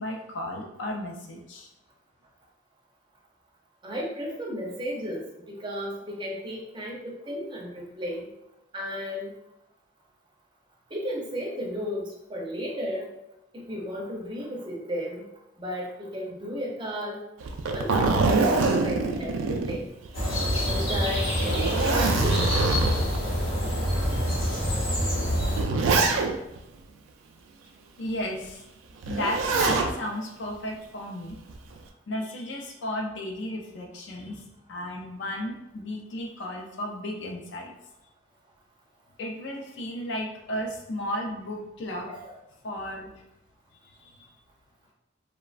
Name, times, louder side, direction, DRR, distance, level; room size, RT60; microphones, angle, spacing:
voice 1, 0.0-1.7 28.0-28.6 29.1-31.4 32.1-37.7 39.2-42.1 42.6-43.1 44.0-44.3, left 1 dB, 65° left, 2 dB, 0.4 m, -34 dB
voice 2, 3.8-8.3 8.7-9.3 10.9-13.1 13.5-15.3 15.6-17.2 17.7-19.9 20.6-21.3 21.6-22.4 42.1-42.4, equal, 25° right, -2 dB, 0.5 m, -34 dB
Zipper (clothing), 17.4-20.3 20.7-20.8 21.3-23.2 23.9-24.1 25.0-26.6 29.0-29.9 31.3-31.8, right 3 dB, 90° right, 0.3 m, -25 dB
sound 1, 20.1-25.6, equal, 85° left, 0.9 m, -26 dB
3.0 x 2.1 x 2.4 m, 0.87 s
head